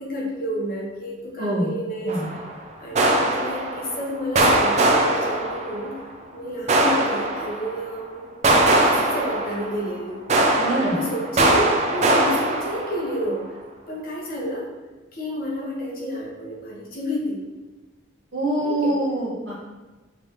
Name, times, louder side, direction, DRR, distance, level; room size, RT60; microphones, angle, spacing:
voice 1, 0.0-2.4 2.8-6.0 6.3-8.3 8.6-10.4 10.9-13.5 13.9-14.7 15.1-17.4 18.6-19.0, equal, 45° left, -4 dB, 1.1 m, -30 dB
voice 2, 1.4-1.7 2.0-2.3 10.6-11.0 18.3-19.6, right 1 dB, 60° right, -6 dB, 1.4 m, -24 dB
sound 1, 2.1-2.5 3.0-4.1 4.4-6.0 6.7-7.8 8.4-9.9 10.3-13.2, right 1 dB, 35° right, 0.4 m, -21 dB
5.2 x 3.2 x 3.0 m, 1.2 s
head